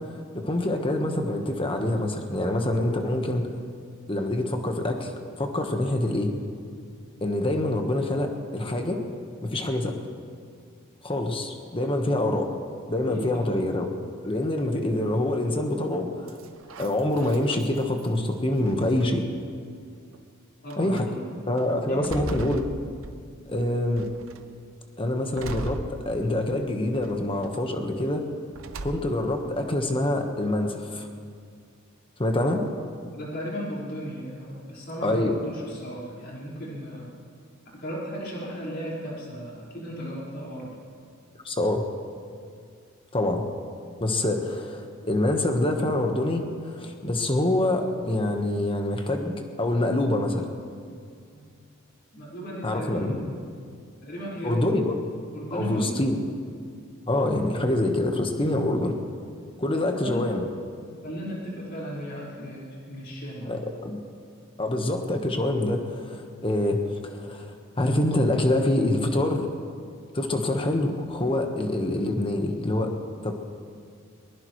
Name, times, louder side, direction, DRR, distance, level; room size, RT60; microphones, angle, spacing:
voice 1, 0.0-3.5 4.1-5.1 5.4-6.3 7.2-9.0 9.4-9.9 11.0-12.5 12.9-13.9 14.2-16.4 16.8-19.2 20.8-21.1 21.5-22.6 23.5-24.1 25.0-28.2 28.8-31.1 32.2-32.6 35.0-35.3 41.4-41.8 43.1-43.4 44.0-50.5 52.6-53.2 54.4-54.9 55.5-56.2 57.1-58.9 59.6-60.4 63.4-64.0 64.6-69.5 70.1-72.9 73.2-73.3, left 1 dB, 25° left, 4 dB, 1.4 m, -26 dB
voice 2, 13.1-13.5 20.6-21.2 21.9-22.1 33.1-37.1 37.8-40.7 51.3-51.6 52.1-53.4 54.0-54.7 55.3-56.0 59.7-60.2 61.0-63.6, equal, 50° left, -7 dB, 5.1 m, -35 dB
sound 1, 16.3-18.2 18.6-19.4 20.1-20.2 20.7-21.0 21.6-23.5 24.0-24.5 25.4-26.5 27.0-27.6 28.5-29.4, right 2 dB, 70° right, 0.8 m, -38 dB
21.5 x 20.5 x 3.2 m, 2.2 s
head